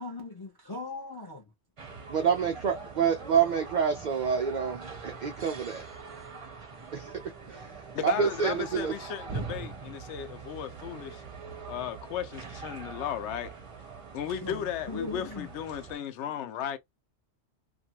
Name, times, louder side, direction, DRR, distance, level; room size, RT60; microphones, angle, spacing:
voice 1, 0.0-1.4 12.9-13.0 14.3-15.5, left 3 dB, 35° left, 0.4 m, -39 dB
sound 1, 1.8-16.0, right 4 dB, 35° right, 0.5 m, -43 dB
voice 2, 2.1-5.8 6.9-7.1 7.5-8.9, right 7 dB, 90° right, 0.4 m, -28 dB
voice 3, 7.9-11.2 11.7-13.5 14.1-16.8, left 9 dB, 70° left, 0.8 m, -35 dB
2.5 x 2.3 x 2.8 m
omnidirectional pair, 1.3 m